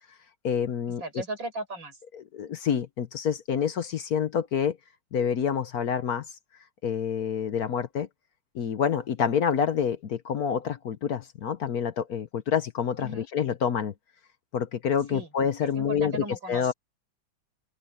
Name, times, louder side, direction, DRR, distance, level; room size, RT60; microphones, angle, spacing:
voice 1, 0.4-1.0 2.3-4.8 5.1-6.2 6.8-8.1 8.5-13.9 14.5-16.7, left 7 dB, 60° left, 1.2 m, -27 dB
voice 2, 1.0-2.0 13.0-13.3 15.1-15.3 15.6-16.7, right 2 dB, 75° right, 7.1 m, -36 dB
open air
omnidirectional pair, 2.1 m